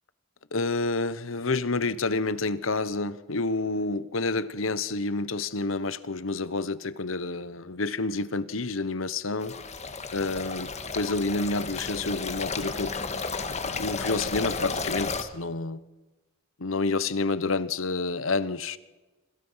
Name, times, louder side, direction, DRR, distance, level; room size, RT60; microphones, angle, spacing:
voice 1, 0.5-9.6 10.1-12.9 13.5-15.8 16.6-18.8, left 3 dB, 80° left, 1.2 m, -29 dB
sound 1, 9.4-15.2, left 4 dB, 35° left, 2.0 m, -33 dB
27.0 x 25.5 x 5.8 m
head